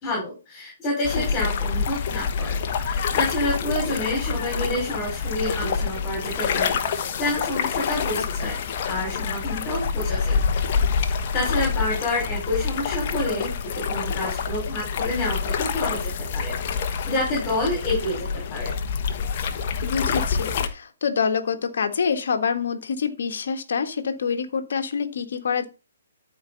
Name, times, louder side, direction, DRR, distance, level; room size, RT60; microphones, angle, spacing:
voice 1, 0.0-6.8 7.2-8.6 8.9-10.4 11.3-18.7, left 1 dB, 25° left, 5.2 m, -28 dB
sound 1, 1.0-20.7, left 6 dB, 40° left, 1.2 m, -27 dB
voice 2, 8.1-8.5 17.3-17.4 19.8-25.7, left 6 dB, 60° left, 1.6 m, -26 dB
13.5 x 4.6 x 4.0 m
figure-of-eight pair, 130°, 0 cm